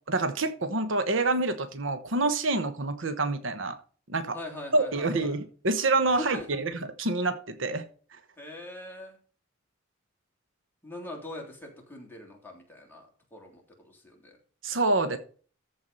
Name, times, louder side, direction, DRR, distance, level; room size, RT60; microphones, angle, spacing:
voice 1, 0.0-3.8 4.1-4.4 4.7-7.9 14.6-15.2, right 2 dB, 70° right, 9 dB, 1.2 m, -27 dB
voice 2, 4.3-5.4 6.1-6.5 8.4-9.2 10.8-14.3, left 2 dB, 10° left, 0 dB, 3.4 m, -42 dB
14.0 x 4.7 x 5.5 m, 0.40 s
head